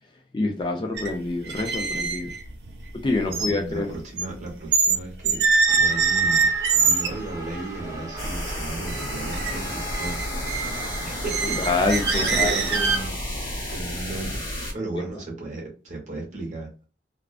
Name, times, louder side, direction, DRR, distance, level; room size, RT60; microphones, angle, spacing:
voice 1, 0.3-2.3 3.0-3.9 11.6-12.5, left 3 dB, 25° left, 0.4 m, -26 dB
sound 1, 0.9-1.1 1.4-5.0 5.2-7.2 7.8-7.9 8.2-8.6 8.9-9.5 9.8-13.2, right 5 dB, 65° right, 0.5 m, -24 dB
voice 2, 3.2-5.4 5.7-10.2 11.0-11.6 12.2-13.1 13.7-14.4 14.7-16.7, right 2 dB, 40° right, 0.9 m, -35 dB
sound 2, 5.7-13.1, right 1 dB, 15° right, 0.6 m, -38 dB
sound 3, 8.2-14.7, left 1 dB, 50° left, 1.0 m, -32 dB
2.3 x 2.3 x 2.3 m
head